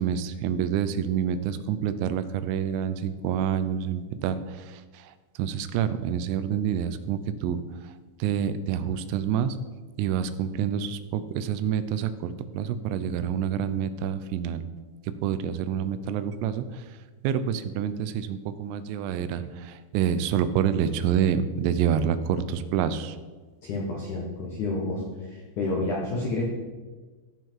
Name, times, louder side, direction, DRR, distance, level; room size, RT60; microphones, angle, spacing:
voice 1, 0.0-4.4 5.4-7.6 8.2-9.5 10.0-14.6 15.2-16.6 17.2-23.2, right 8 dB, 90° right, 11 dB, 3.3 m, -27 dB
voice 2, 23.6-26.5, left 2 dB, 75° left, -2 dB, 1.8 m, -30 dB
15.5 x 5.8 x 4.6 m, 1.4 s
omnidirectional pair, 5.7 m